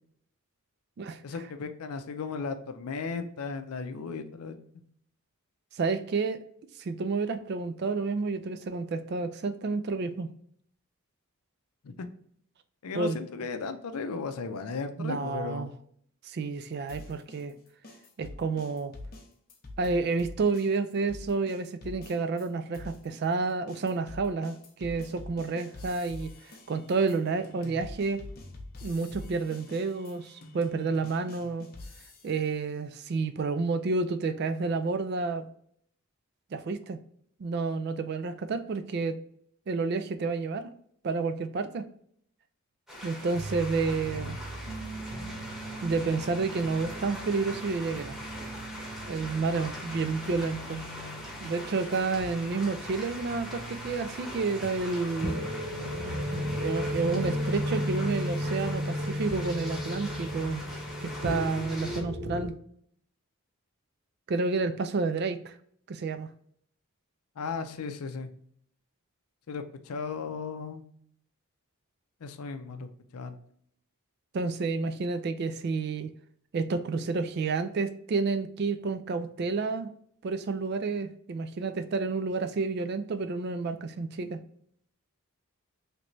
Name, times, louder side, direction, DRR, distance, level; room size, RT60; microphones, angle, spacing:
voice 1, 1.2-4.5 11.8-12.1 12.8-15.7 44.1-44.4 67.4-68.3 69.5-70.8 72.2-73.4, left 5 dB, 80° left, 9 dB, 0.4 m, -36 dB
voice 2, 5.7-6.4 6.8-10.3 12.9-13.2 15.0-15.7 16.2-17.5 18.2-18.9 19.8-28.2 28.8-31.7 32.2-35.5 36.5-37.0 37.4-39.2 39.7-40.7 41.0-41.9 43.0-44.4 45.8-48.2 49.1-50.8 51.4-55.4 56.6-60.6 61.0-62.5 64.3-65.6 65.9-66.3 74.3-76.1 76.5-79.9 80.2-84.4, right 4 dB, 45° right, 10 dB, 0.3 m, -30 dB
sound 1, 16.9-22.5 22.7-32.5, left 2 dB, 40° left, 0.6 m, -46 dB
sound 2, 42.9-62.0, equal, ahead, 0.9 m, -42 dB
sound 3, 43.3-62.5, equal, 85° right, 0.8 m, -36 dB
3.3 x 3.0 x 2.6 m, 0.65 s
head